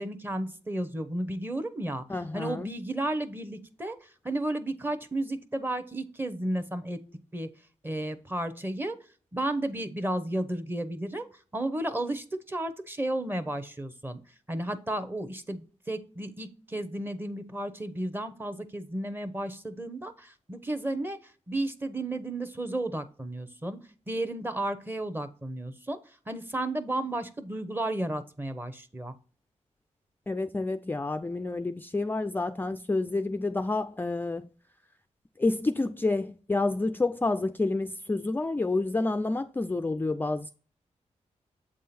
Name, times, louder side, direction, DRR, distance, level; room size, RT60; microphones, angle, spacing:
voice 1, 0.0-2.1 2.3-7.0 7.3-7.5 7.8-9.0 9.3-11.3 11.5-14.2 14.5-21.2 21.5-23.8 24.1-26.0 26.3-29.1, right 1 dB, 15° right, 0.9 m, -33 dB
voice 2, 2.1-2.7 30.3-34.5 35.4-40.5, left 2 dB, 15° left, 0.4 m, -29 dB
7.7 x 3.7 x 4.2 m
cardioid pair, 80°, 13 cm